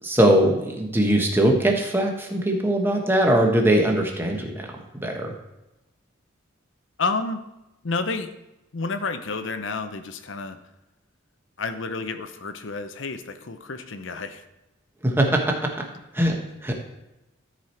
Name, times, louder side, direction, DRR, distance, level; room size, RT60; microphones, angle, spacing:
voice 1, 0.0-5.3 15.0-15.7 16.1-16.7, right 1 dB, 10° right, 1 dB, 1.1 m, -21 dB
voice 2, 7.0-7.4 7.8-8.3 8.7-10.6 11.6-14.5, left 4 dB, 60° left, 9 dB, 0.7 m, -30 dB
13.5 x 4.9 x 4.4 m, 0.95 s
head